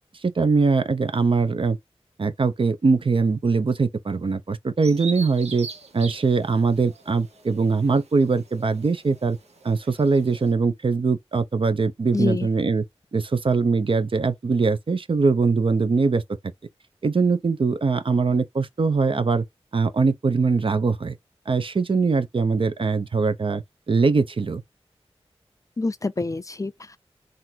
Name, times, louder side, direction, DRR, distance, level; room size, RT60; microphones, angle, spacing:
voice 1, 0.2-1.8 2.2-5.7 5.9-9.4 9.6-12.8 13.1-16.2 17.0-19.4 19.7-21.1 21.5-24.6, right 4 dB, 55° right, 0.7 m, -22 dB
Bird vocalization bird call bird song, 4.8-10.5, right 5 dB, 85° right, 1.0 m, -41 dB
voice 2, 12.1-12.5 25.8-27.0, left 3 dB, 30° left, 0.4 m, -26 dB
3.8 x 2.6 x 4.4 m
wide cardioid pair, 95°, 11 cm